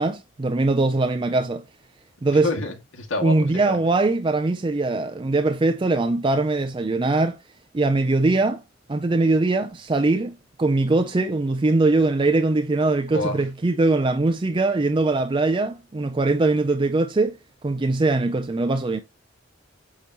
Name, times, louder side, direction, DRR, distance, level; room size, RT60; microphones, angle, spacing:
voice 1, 0.0-1.6 2.2-2.5 3.2-7.4 7.7-8.6 8.9-17.4 17.6-19.0, right 2 dB, 25° right, 0.4 m, -21 dB
voice 2, 2.3-3.8 13.1-13.4, left 2 dB, 85° left, 2.0 m, -29 dB
8.6 x 3.0 x 5.3 m
head